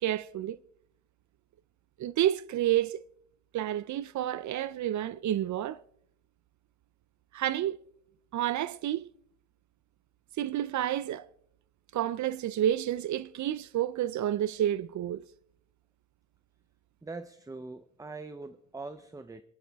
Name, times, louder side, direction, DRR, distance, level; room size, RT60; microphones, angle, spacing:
voice 1, 0.0-0.6 2.0-3.0 3.5-5.8 7.3-7.8 8.3-9.1 10.4-11.3 11.9-15.2, right 12 dB, 70° right, 0.5 m, -30 dB
voice 2, 17.0-19.4, right 3 dB, 10° right, 0.5 m, -42 dB
27.0 x 11.5 x 3.4 m
wide cardioid pair, 165°, 30 cm